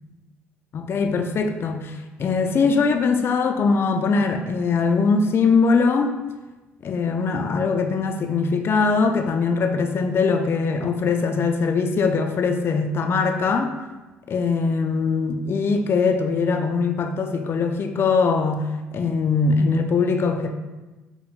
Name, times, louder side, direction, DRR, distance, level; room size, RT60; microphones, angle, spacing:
voice 1, 0.7-6.2 6.8-13.7 14.3-20.5, left 4 dB, 45° left, 5 dB, 0.4 m, -21 dB
4.6 x 2.1 x 3.5 m, 1.1 s
supercardioid pair, 70°, 6 cm